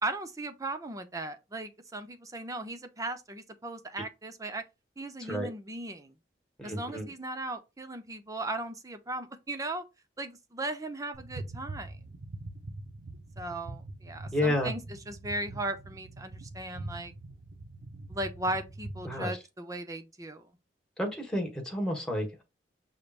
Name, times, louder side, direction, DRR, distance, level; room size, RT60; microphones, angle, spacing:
voice 1, 0.0-4.6 5.0-6.1 6.6-9.8 10.2-12.0 13.4-17.1 18.1-20.4, right 2 dB, 20° right, 0.7 m, -37 dB
voice 2, 6.6-7.0 14.3-14.7 19.0-19.4 21.0-22.4, left 1 dB, 5° left, 1.4 m, -30 dB
sound 1, 11.1-19.2, right 2 dB, 80° right, 0.7 m, -43 dB
5.6 x 3.3 x 2.5 m
head